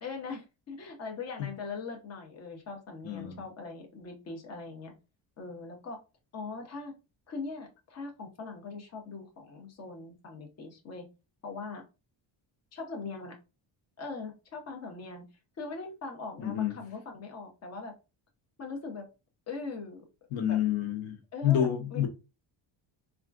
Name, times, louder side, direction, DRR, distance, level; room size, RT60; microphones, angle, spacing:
voice 1, 0.0-4.9 5.4-6.0 6.3-6.9 7.3-11.1 11.4-11.8 12.7-13.4 14.0-15.2 15.6-17.9 18.6-19.1 19.5-20.1 20.4-20.6 21.3-22.1, left 4 dB, 35° left, 0.7 m, -41 dB
voice 2, 3.0-3.4 16.4-16.7 20.3-22.1, left 10 dB, 80° left, 0.8 m, -29 dB
3.5 x 2.4 x 2.4 m
cardioid pair, 175°, 47 cm